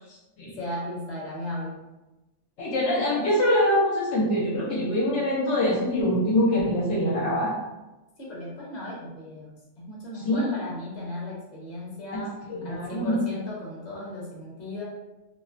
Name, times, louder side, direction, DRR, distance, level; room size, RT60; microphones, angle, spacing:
voice 1, 0.5-1.9 8.2-12.4 12.6-14.8, left 1 dB, 40° left, -5 dB, 0.8 m, -36 dB
voice 2, 2.6-7.5 10.3-10.5 12.1-12.2 12.5-13.2, left 1 dB, 75° left, -4 dB, 0.9 m, -24 dB
2.4 x 2.0 x 2.5 m, 1.0 s
omnidirectional pair, 1.3 m